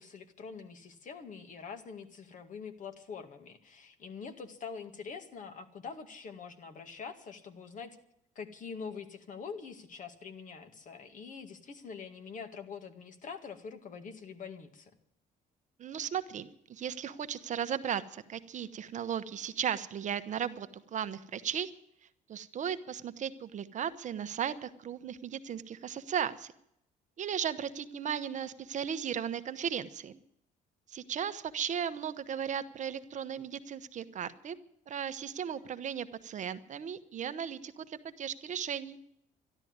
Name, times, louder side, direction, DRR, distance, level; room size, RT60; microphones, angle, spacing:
voice 1, 0.0-8.0 8.4-14.9 35.6-35.7, left 5 dB, 50° left, 8 dB, 2.0 m, -45 dB
voice 2, 15.8-21.7 22.3-26.5 27.2-30.2 30.9-34.6 34.9-39.0, right 8 dB, 45° right, 11 dB, 0.9 m, -36 dB
13.0 x 12.0 x 9.5 m, 0.75 s
cardioid pair, 110°, 17 cm